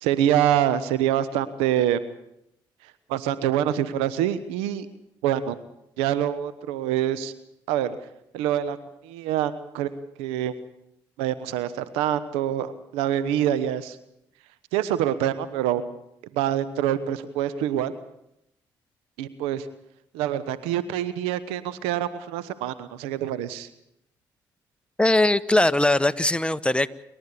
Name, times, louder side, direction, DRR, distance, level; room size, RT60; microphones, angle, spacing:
voice 1, 0.0-2.0 3.1-4.9 5.2-5.6 6.0-7.3 7.7-8.0 8.3-8.8 9.0-9.9 10.2-10.5 11.2-14.0 14.7-15.8 16.3-17.9 19.2-19.7 20.1-23.7, right 11 dB, 90° right, 14 dB, 1.0 m, -25 dB
voice 2, 25.0-26.9, left 1 dB, 10° left, 14 dB, 1.0 m, -20 dB
28.5 x 12.5 x 8.4 m, 0.80 s
supercardioid pair, 55°, 10 cm